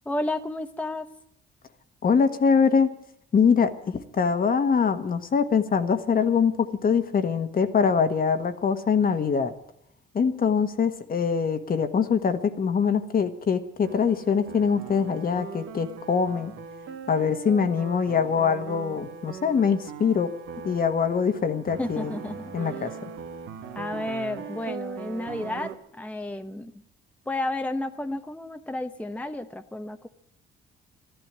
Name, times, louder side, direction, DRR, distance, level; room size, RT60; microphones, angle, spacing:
voice 1, 0.0-1.1 21.8-22.9 23.7-26.7 27.3-30.1, left 1 dB, 5° left, 7 dB, 0.9 m, -32 dB
voice 2, 2.0-2.9 3.3-9.5 10.1-16.5 17.1-20.3 20.6-22.1 22.5-23.1, left 6 dB, 45° left, 9 dB, 1.5 m, -23 dB
sound 1, 13.8-25.7, right 6 dB, 85° right, 1.7 m, -40 dB
13.5 x 11.5 x 9.0 m, 0.72 s
cardioid pair, 90°, 20 cm